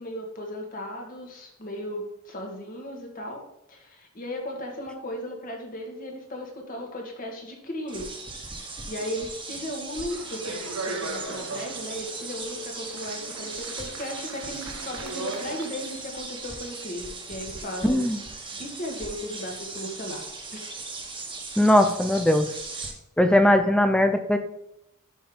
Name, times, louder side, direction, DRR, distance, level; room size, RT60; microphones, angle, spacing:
voice 1, 0.0-3.4 3.7-8.1 8.9-18.0 18.6-20.2 20.5-20.6, left 1 dB, 40° left, 1 dB, 1.9 m, -36 dB
sound 1, 7.9-22.9, right 3 dB, 20° right, 1.5 m, -38 dB
Speech, 10.1-15.9, right 3 dB, 75° right, 1.1 m, -38 dB
voice 2, 17.8-18.2 21.6-22.5 23.2-24.4, left 1 dB, 5° left, 8 dB, 0.5 m, -19 dB
11.5 x 5.3 x 3.8 m, 0.83 s
head